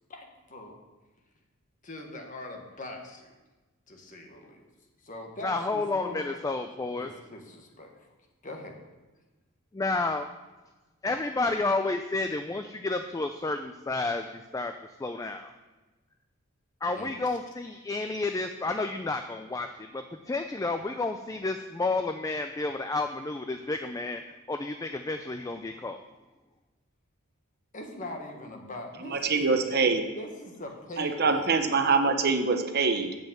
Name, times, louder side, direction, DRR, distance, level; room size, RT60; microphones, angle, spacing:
voice 1, 0.1-0.8 1.8-3.3 3.9-4.6 5.0-6.2 7.0-8.1 8.4-8.8 16.9-17.4 27.7-29.6 30.1-31.4, left 1 dB, 35° left, 2 dB, 1.3 m, -42 dB
voice 2, 5.4-7.1 9.7-10.3 11.0-14.7 15.0-15.5 16.8-24.2 24.5-26.0, left 3 dB, 15° left, 7 dB, 0.3 m, -31 dB
voice 3, 29.0-30.1 31.0-33.1, right 4 dB, 45° right, 6 dB, 0.8 m, -24 dB
7.9 x 5.1 x 7.3 m, 1.2 s
head